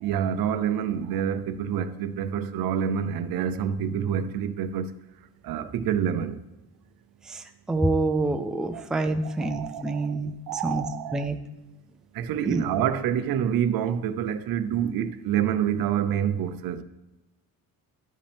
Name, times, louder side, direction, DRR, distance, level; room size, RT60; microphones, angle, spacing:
voice 1, 0.0-4.9 5.4-6.4 8.7-8.8 9.2-10.1 10.5-11.3 12.2-16.8, right 9 dB, 80° right, 0.7 m, -27 dB
voice 2, 7.7-10.3 10.6-10.8 11.1-11.3 12.5-12.6, right 2 dB, ahead, 0.4 m, -26 dB
12.5 x 5.2 x 3.5 m
cardioid pair, 145°, 35 cm